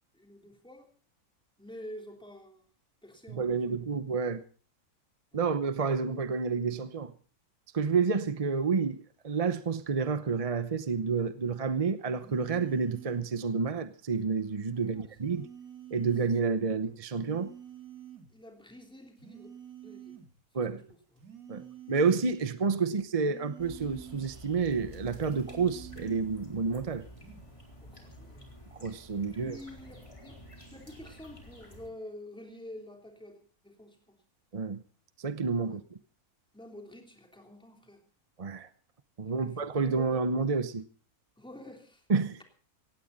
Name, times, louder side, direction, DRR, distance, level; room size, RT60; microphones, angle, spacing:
voice 1, 0.1-0.9 1.6-2.6 3.0-3.8 5.3-5.4 14.8-15.1 18.3-19.5 19.8-20.2 20.6-21.0 21.5-21.7 22.4-22.5 22.8-22.9 27.8-28.5 29.2-30.4 30.7-34.2 35.6-35.8 36.5-38.0 39.2-40.2 41.4-42.0, left 1 dB, 5° left, 3.2 m, -49 dB
voice 2, 3.3-4.4 5.3-7.1 7.7-15.5 15.9-17.5 20.5-20.8 21.5-27.0 28.8-29.6 34.5-34.8 35.2-35.8 38.4-38.7 39.2-40.8 42.1-42.4, right 5 dB, 35° right, 0.6 m, -29 dB
sound 1, 12.2-13.3 15.2-16.3 17.2-18.3 19.2-20.3 21.2-22.4 23.2-24.4 25.2-26.4 27.2-27.5, right 10 dB, 70° right, 3.0 m, -48 dB
sound 2, 23.6-31.9, equal, 20° left, 3.6 m, -50 dB
17.5 x 17.0 x 4.0 m
omnidirectional pair, 1.6 m